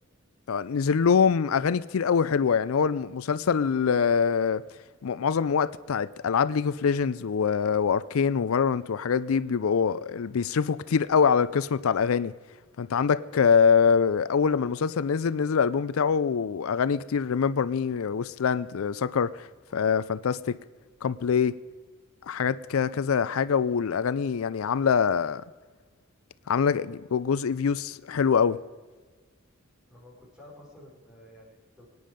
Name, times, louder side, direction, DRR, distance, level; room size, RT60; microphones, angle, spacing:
voice 1, 0.5-4.6 5.0-12.3 12.8-20.6 21.0-21.5 22.2-25.4 26.5-28.6, left 6 dB, 85° left, 0.4 m, -24 dB
voice 2, 29.9-31.9, left 1 dB, 5° right, 4.5 m, -51 dB
24.0 x 9.4 x 5.1 m
head